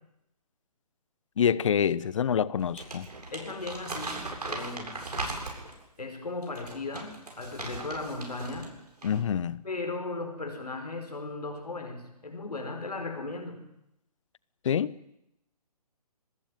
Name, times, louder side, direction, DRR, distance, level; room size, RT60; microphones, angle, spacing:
voice 1, 1.4-3.1 9.0-9.6 14.6-14.9, left 8 dB, 50° left, 1.1 m, -26 dB
Crumpling crinkling, 2.6-5.8 6.4-8.7 9.0-9.2, right 2 dB, 80° right, 7.7 m, -38 dB
voice 2, 3.3-5.0 6.0-8.8 9.6-13.6, left 3 dB, 80° left, 5.3 m, -37 dB
24.0 x 20.5 x 9.5 m
figure-of-eight pair, 140°, 20 cm